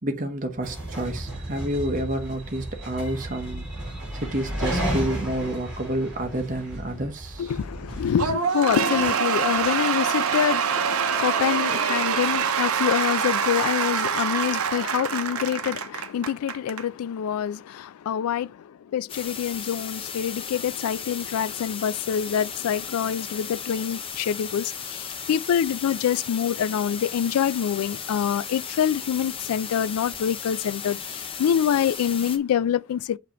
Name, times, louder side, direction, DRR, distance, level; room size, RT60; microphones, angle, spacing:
voice 1, 0.0-7.5, right 1 dB, 35° right, 1.0 m, -29 dB
sound 1, 0.6-8.3, right 1 dB, ahead, 4.1 m, -33 dB
voice 2, 7.4-33.2, left 8 dB, 90° left, 0.3 m, -26 dB
Cheering / Applause / Crowd, 8.2-16.8, right 7 dB, 85° right, 0.7 m, -25 dB
sound 2, 19.1-32.4, left 7 dB, 25° left, 0.5 m, -35 dB
6.6 x 2.9 x 5.0 m
head